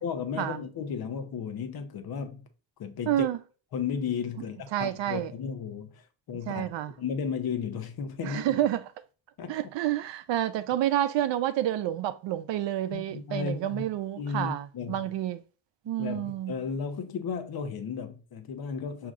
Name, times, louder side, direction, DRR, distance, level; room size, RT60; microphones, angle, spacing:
voice 1, 0.0-2.4 2.8-3.3 3.7-6.0 6.3-6.7 7.0-8.6 9.4-9.6 12.9-13.8 14.2-15.0 16.0-19.1, left 6 dB, 55° left, 0.7 m, -34 dB
voice 2, 3.1-3.4 4.7-5.3 6.5-6.9 8.2-8.8 9.5-15.4 15.9-16.5, right 12 dB, 70° right, 0.5 m, -29 dB
6.2 x 2.8 x 2.4 m
wide cardioid pair, 170°, 45 cm